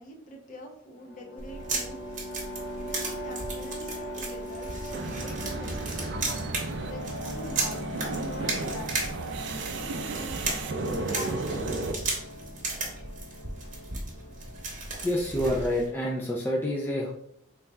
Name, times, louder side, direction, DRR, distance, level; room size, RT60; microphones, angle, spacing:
voice 1, 0.0-2.4 2.8-6.2 6.8-9.1 9.8-10.6 10.8-12.2, equal, 40° left, 1 dB, 0.7 m, -44 dB
sound 1, 0.9-16.4, equal, 70° left, 0.9 m, -40 dB
sound 2, 1.4-15.9, right 3 dB, 40° right, 1.0 m, -36 dB
sound 3, 4.9-11.9, right 3 dB, 70° right, 0.4 m, -34 dB
voice 2, 15.0-17.1, left 1 dB, 10° left, -3 dB, 0.4 m, -27 dB
3.3 x 2.3 x 4.1 m, 0.71 s
head